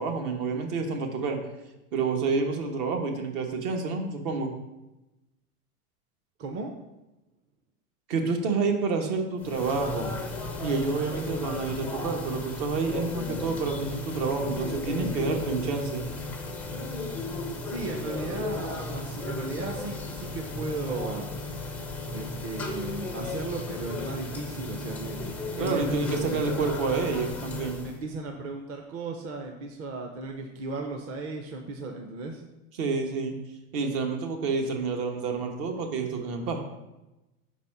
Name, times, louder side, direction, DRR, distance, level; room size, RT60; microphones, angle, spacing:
voice 1, 0.0-1.4 1.9-4.5 8.1-10.1 10.6-16.0 25.6-27.8 32.8-33.3 33.7-36.6, right 4 dB, 60° right, 3 dB, 1.4 m, -29 dB
voice 2, 6.4-6.7 17.6-21.3 22.1-26.8 27.8-32.4, right 3 dB, 30° right, 2 dB, 0.7 m, -36 dB
sound 1, 9.4-28.0, left 2 dB, 5° left, 0.3 m, -35 dB
5.5 x 4.2 x 5.9 m, 0.99 s
supercardioid pair, 125°, 44 cm